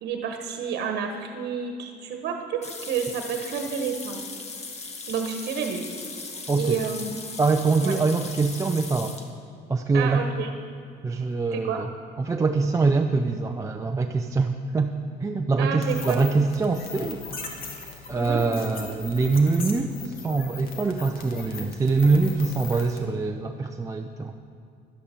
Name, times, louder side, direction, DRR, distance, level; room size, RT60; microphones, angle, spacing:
voice 1, 0.0-4.2 5.1-5.9 6.6-7.1 7.8-8.0 9.9-10.5 11.5-11.8 15.6-16.2 18.1-18.4, right 6 dB, 80° right, 4 dB, 1.2 m, -30 dB
sound 1, 2.6-9.3, left 4 dB, 40° left, 1.5 m, -38 dB
voice 2, 6.5-6.8 7.4-9.2 9.7-10.3 11.0-11.9 12.2-14.9 15.2-17.7 18.1-24.4, right 4 dB, 20° right, 3 dB, 0.6 m, -24 dB
sound 2, 15.8-23.0, left 4 dB, 60° left, 1.9 m, -40 dB
11.5 x 10.0 x 6.9 m, 2.5 s
cardioid pair, 110°, 17 cm